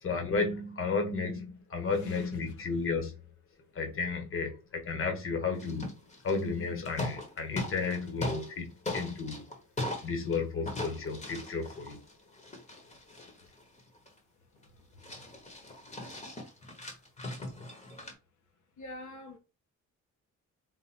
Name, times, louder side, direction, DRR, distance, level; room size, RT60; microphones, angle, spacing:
voice 1, 0.0-3.2 3.7-5.9 6.2-9.4 10.0-12.0, left 4 dB, 45° left, 1.4 m, -33 dB
voice 2, 2.0-2.5 15.1-15.2 18.8-19.4, left 1 dB, 70° left, 1.3 m, -46 dB
sound 1, 5.6-6.6 6.9-8.5 8.9-10.4 10.7-14.2 14.6-14.7 15.0-18.1, left 2 dB, 20° left, 1.2 m, -39 dB
4.1 x 2.5 x 4.4 m
cardioid pair, 135°, 31 cm